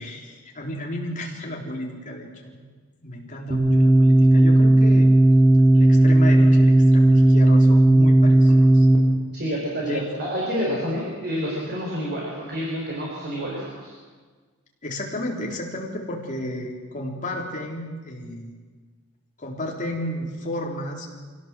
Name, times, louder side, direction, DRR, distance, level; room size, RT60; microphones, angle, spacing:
voice 1, 0.0-2.6 3.0-5.1 5.7-8.8 9.8-10.3 14.8-18.5 19.4-21.1, left 1 dB, 40° left, -1 dB, 4.0 m, -32 dB
sound 1, 3.5-9.0, right 1 dB, 20° right, 4.0 m, -15 dB
voice 2, 9.3-13.9, equal, 50° right, -3 dB, 5.4 m, -28 dB
25.5 x 17.0 x 7.7 m, 1.5 s
head